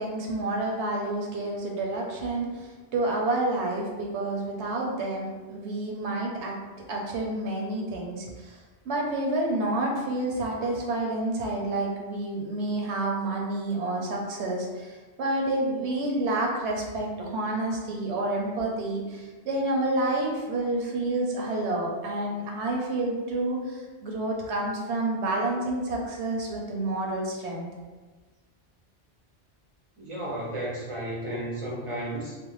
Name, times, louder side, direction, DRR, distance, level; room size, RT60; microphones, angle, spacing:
voice 1, 0.0-6.6 6.9-8.6 8.8-27.7, right 2 dB, 85° right, -1 dB, 0.9 m, -29 dB
voice 2, 30.0-32.4, right 1 dB, 40° right, -5 dB, 0.5 m, -33 dB
2.4 x 2.1 x 3.0 m, 1.3 s
omnidirectional pair, 1.1 m